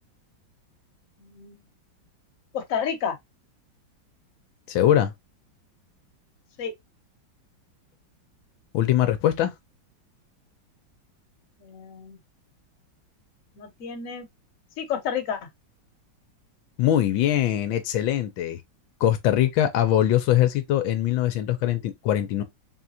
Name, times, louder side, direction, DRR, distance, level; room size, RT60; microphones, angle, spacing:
voice 1, 1.2-1.6 2.5-3.2 6.6-6.7 11.6-12.2 13.6-14.3 14.8-15.5, left 7 dB, 50° left, 1.3 m, -30 dB
voice 2, 4.7-5.1 8.7-9.5 16.8-18.6 19.0-22.4, left 12 dB, 80° left, 1.5 m, -22 dB
3.9 x 3.6 x 2.8 m
omnidirectional pair, 2.1 m